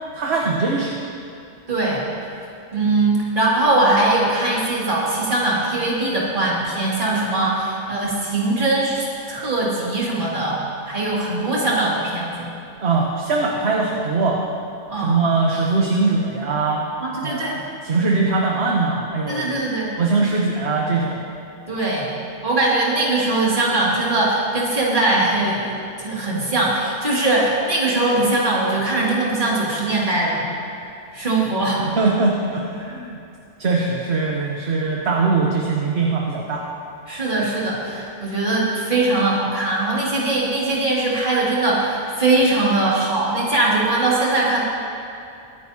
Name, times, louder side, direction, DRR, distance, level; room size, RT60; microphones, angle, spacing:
voice 1, 0.1-1.0 12.8-14.4 15.0-16.8 17.2-19.5 20.0-21.2 32.0-33.2 33.6-36.7, right 3 dB, 55° right, -1 dB, 1.3 m, -21 dB
voice 2, 1.7-2.0 2.7-10.6 10.9-12.5 14.9-15.3 17.0-17.6 19.3-19.9 21.7-22.1 22.4-30.4 31.1-31.8 37.1-44.6, right 2 dB, 40° right, -6 dB, 2.7 m, -21 dB
23.0 x 9.3 x 2.9 m, 2.5 s
omnidirectional pair, 1.3 m